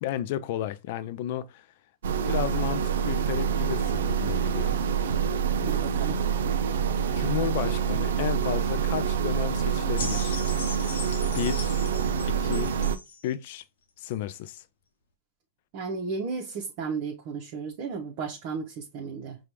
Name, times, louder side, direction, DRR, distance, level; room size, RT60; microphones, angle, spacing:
voice 1, 0.0-1.7 2.2-4.7 7.1-10.4 11.3-11.7 12.3-12.7 13.2-13.6 14.0-14.6, left 11 dB, 60° left, 0.4 m, -32 dB
sound 1, 2.0-13.0, right 7 dB, 80° right, 0.4 m, -26 dB
voice 2, 5.6-6.2 15.7-19.4, right 5 dB, 50° right, 0.8 m, -34 dB
sound 2, 10.0-13.2 14.1-14.2, left 4 dB, 75° left, 0.7 m, -39 dB
5.0 x 2.3 x 2.9 m
hypercardioid pair, 130°, 0 cm